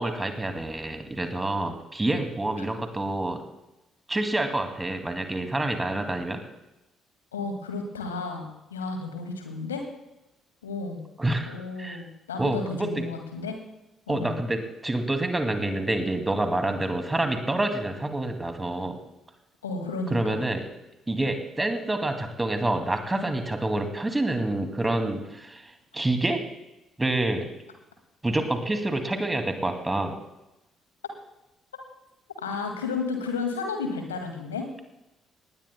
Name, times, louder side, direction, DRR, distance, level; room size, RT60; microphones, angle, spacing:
voice 1, 0.0-3.4 4.1-6.4 11.2-12.0 12.4-12.6 14.1-19.0 20.1-20.7 21.1-25.6 25.9-26.4 27.0-27.5 28.2-30.1, right 2 dB, 15° right, 6 dB, 2.4 m, -27 dB
voice 2, 7.3-9.8 10.6-11.0 11.5-13.6 14.1-14.3 19.6-20.4 32.4-34.8, left 4 dB, 80° left, 4 dB, 2.0 m, -32 dB
20.5 x 19.0 x 2.2 m, 0.95 s
figure-of-eight pair, 45°, 0 cm